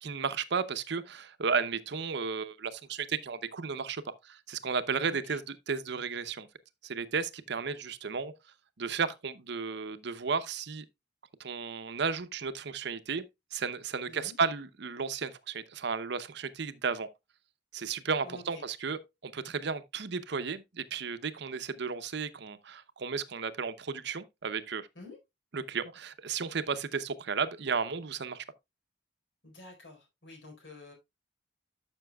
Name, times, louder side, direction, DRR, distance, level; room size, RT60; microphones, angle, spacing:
voice 1, 0.0-6.5 6.8-8.3 8.8-10.8 11.4-13.2 13.5-17.1 17.7-24.9 25.5-28.4, right 5 dB, 65° right, 0.7 m, -34 dB
voice 2, 5.1-5.4 14.1-14.3 18.2-18.4 24.9-25.2 29.4-30.9, left 2 dB, 75° left, 4.3 m, -49 dB
12.5 x 6.0 x 2.3 m
head